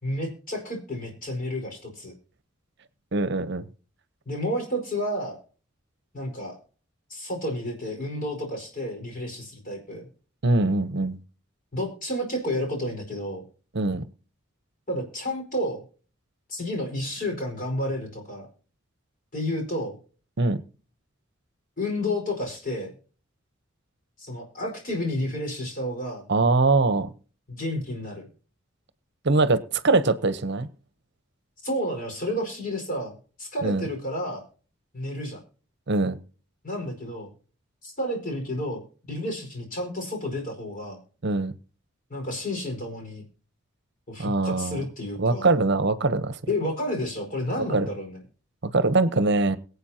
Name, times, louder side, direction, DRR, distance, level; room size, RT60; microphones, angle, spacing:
voice 1, 0.0-2.1 4.2-5.4 6.1-6.6 7.1-10.1 11.7-13.4 14.9-15.8 16.5-18.5 19.3-20.0 21.8-23.0 24.2-26.3 27.5-28.3 31.6-34.4 34.9-35.4 36.6-37.3 37.8-38.8 39.1-41.0 42.1-43.2 44.1-45.5 46.5-48.2, left 1 dB, 45° left, 4.8 m, -31 dB
voice 2, 3.1-3.6 10.4-11.2 13.7-14.0 20.4-20.6 26.3-27.1 29.2-30.7 33.6-33.8 35.9-36.2 41.2-41.5 44.2-44.8 45.2-46.4 47.7-47.9 48.6-49.6, right 3 dB, 60° right, 0.9 m, -22 dB
22.5 x 8.1 x 2.8 m
head